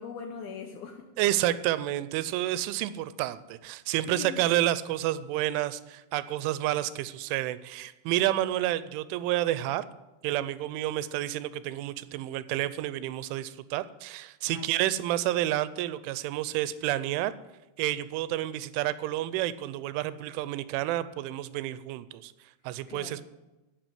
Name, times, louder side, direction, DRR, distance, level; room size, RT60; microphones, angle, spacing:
voice 1, 0.0-1.1 4.1-4.5 14.5-14.7 22.9-23.2, left 6 dB, 80° left, 4 dB, 2.1 m, -41 dB
voice 2, 1.2-9.8 10.2-17.3 17.8-22.3 22.6-23.3, right 14 dB, 85° right, 15 dB, 3.0 m, -30 dB
10.5 x 8.3 x 9.4 m, 1.1 s
omnidirectional pair, 5.6 m